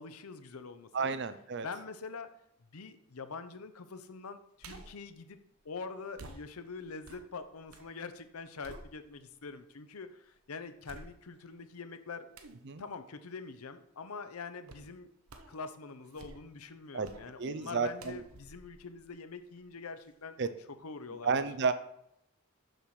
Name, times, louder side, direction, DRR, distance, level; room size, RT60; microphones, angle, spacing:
voice 1, 0.0-1.2 1.6-2.3 2.7-12.3 12.8-15.1 15.5-20.4 20.8-21.3, left 4 dB, 90° left, 10 dB, 0.7 m, -44 dB
voice 2, 0.9-1.7 12.7-12.8 16.9-17.1 17.4-18.2 20.4-20.5 21.2-21.7, right 5 dB, 55° right, 11 dB, 0.6 m, -31 dB
sound 1, 4.6-5.1 6.2-7.9 8.3-9.4 9.9-10.0 10.8-11.5 12.3-12.7 14.7-14.9 15.3-15.6 16.0-16.6 17.0-17.3 18.0-19.7 20.0-20.1, right 2 dB, 80° right, 0.8 m, -52 dB
6.7 x 4.7 x 5.9 m, 0.76 s
head